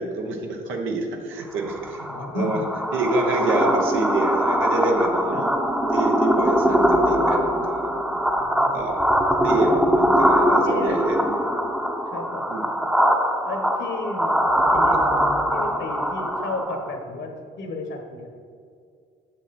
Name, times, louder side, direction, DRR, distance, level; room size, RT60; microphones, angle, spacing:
voice 1, 0.0-2.1 2.3-2.6 2.9-8.2 8.7-9.0 9.4-11.5 12.5-12.7, right 2 dB, 85° right, 2 dB, 1.1 m, -27 dB
sound 1, 1.6-17.0, equal, 5° right, 0.7 m, -22 dB
voice 2, 2.1-2.6 5.3-5.5 8.4-8.8 10.6-11.0 12.1-12.4 13.4-14.4 14.7-15.0 15.5-17.3 17.6-18.3, left 2 dB, 70° left, 3 dB, 1.4 m, -32 dB
7.6 x 6.1 x 4.3 m, 2.2 s
cardioid pair, 90°, 20 cm